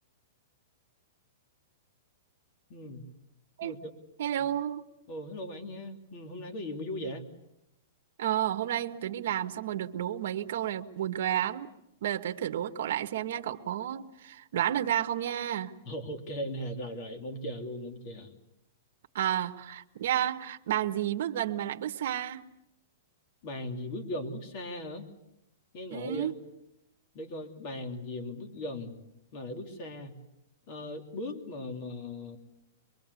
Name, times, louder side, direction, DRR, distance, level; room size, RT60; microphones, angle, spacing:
voice 1, 2.7-3.0 3.6-3.9 5.1-7.2 15.8-18.3 23.4-25.1 25.7-26.3 27.1-29.0 29.3-30.2 30.7-32.4, left 1 dB, 35° left, 3.1 m, -38 dB
voice 2, 4.2-4.8 8.2-11.7 12.0-15.7 19.1-22.5 25.9-26.3, right 11 dB, 55° right, 1.3 m, -31 dB
23.5 x 23.5 x 8.3 m
hypercardioid pair, 170°, 0 cm